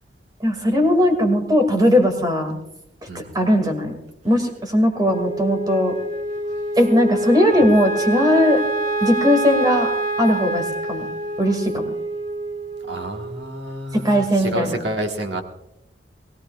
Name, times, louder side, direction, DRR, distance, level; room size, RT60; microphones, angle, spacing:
voice 1, 0.4-2.6 3.1-3.9 4.2-5.9 6.8-8.6 9.0-9.9 10.2-11.1 11.4-11.9 13.9-14.8, left 1 dB, 25° right, 5 dB, 2.2 m, -18 dB
Wind instrument woodwind instrument, 5.1-13.5, right 2 dB, 40° right, 1.5 m, -26 dB
voice 2, 12.9-15.4, right 1 dB, 70° right, 3 dB, 1.6 m, -29 dB
21.5 x 16.5 x 2.4 m, 0.81 s
head